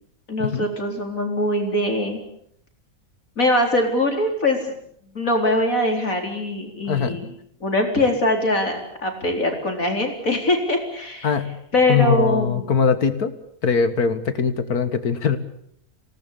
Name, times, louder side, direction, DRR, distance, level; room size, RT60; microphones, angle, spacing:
voice 1, 0.3-2.2 3.4-4.6 5.1-7.3 7.6-11.3 11.7-12.7, left 1 dB, 65° left, 3 dB, 4.7 m, -22 dB
voice 2, 6.9-7.2 11.2-11.6 11.9-13.3 13.6-15.4, left 6 dB, 85° left, 11 dB, 2.2 m, -21 dB
27.0 x 18.5 x 8.5 m, 0.69 s
omnidirectional pair, 1.6 m